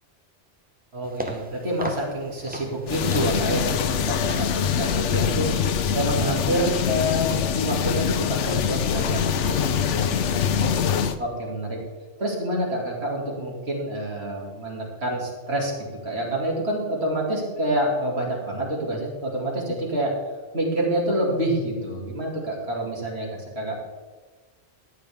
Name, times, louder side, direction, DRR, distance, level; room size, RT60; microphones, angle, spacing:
voice 1, 0.9-4.5 4.8-5.5 5.9-10.8 11.2-11.8 12.2-15.7 16.0-20.1 20.5-23.7, right 1 dB, 60° right, -3 dB, 2.8 m, -27 dB
sound 1, 1.0-6.7, equal, 10° right, 0.8 m, -39 dB
sound 2, 2.9-11.2, left 7 dB, 85° left, 1.0 m, -24 dB
13.0 x 9.3 x 3.6 m, 1.4 s
omnidirectional pair, 1.2 m